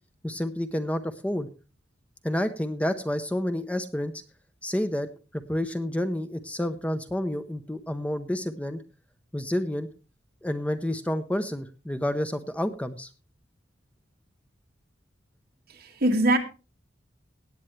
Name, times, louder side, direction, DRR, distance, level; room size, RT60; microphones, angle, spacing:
voice 1, 0.2-1.5 2.2-4.1 4.6-5.1 5.3-8.8 9.3-9.9 10.4-13.1, left 1 dB, 5° left, 0.7 m, -29 dB
voice 2, 15.7-16.4, right 1 dB, 55° right, 2.1 m, -22 dB
17.5 x 9.0 x 3.2 m
head